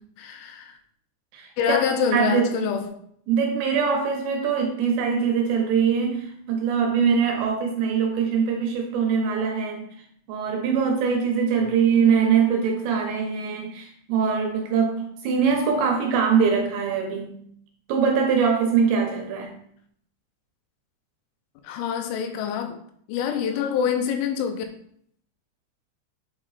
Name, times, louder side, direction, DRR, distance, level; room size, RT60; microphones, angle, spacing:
voice 1, 0.2-0.8 1.6-2.9 11.6-11.7 21.6-22.8 23.1-24.6, left 8 dB, 85° left, 6 dB, 2.9 m, -26 dB
voice 2, 1.3-1.8 2.1-2.4 3.3-9.9 10.3-17.4 17.9-19.5, right 6 dB, 75° right, 2 dB, 2.8 m, -22 dB
8.0 x 2.9 x 4.0 m, 0.65 s
omnidirectional pair, 5.5 m